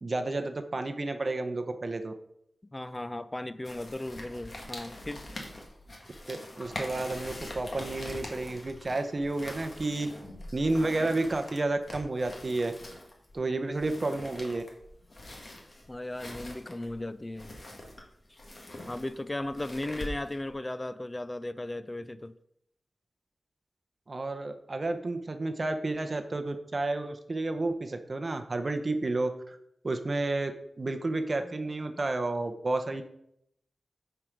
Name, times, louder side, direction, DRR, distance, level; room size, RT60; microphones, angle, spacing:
voice 1, 0.0-2.1 6.3-10.1 10.5-12.7 13.3-14.6 24.1-29.6 29.8-30.5 30.8-33.0, right 2 dB, 40° right, 0.8 m, -31 dB
voice 2, 2.7-5.2 15.9-17.5 18.3-18.4 18.9-22.3 31.4-31.5 31.9-32.0, left 1 dB, 20° left, 0.4 m, -36 dB
sound 1, 3.6-20.5, left 1 dB, 40° left, 1.7 m, -44 dB
9.6 x 4.6 x 5.1 m
wide cardioid pair, 110°, 0 cm